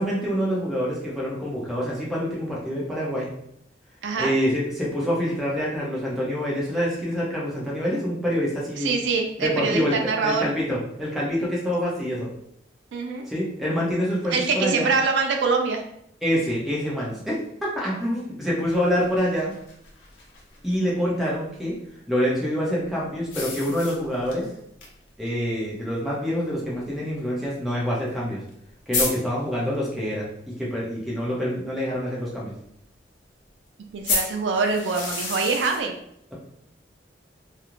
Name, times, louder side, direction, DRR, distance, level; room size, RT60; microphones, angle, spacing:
voice 1, 0.0-3.3 4.2-8.9 9.4-12.3 13.3-14.9 16.2-17.4 17.8-19.6 20.6-21.7 22.1-24.5 25.2-28.4 28.9-32.5, equal, ahead, -6 dB, 0.6 m, -26 dB
voice 2, 4.0-4.3 8.8-10.5 12.9-13.2 14.3-15.8 33.9-35.9, right 4 dB, 80° right, 4 dB, 0.4 m, -24 dB
sound 1, 18.7-20.8 23.3-24.4 24.8-24.9 25.3-25.4 26.3-26.4 28.2-28.3 28.5-28.6 28.9-29.1 34.0-35.8, left 3 dB, 85° left, 0.6 m, -30 dB
2.4 x 2.0 x 2.9 m, 0.72 s
head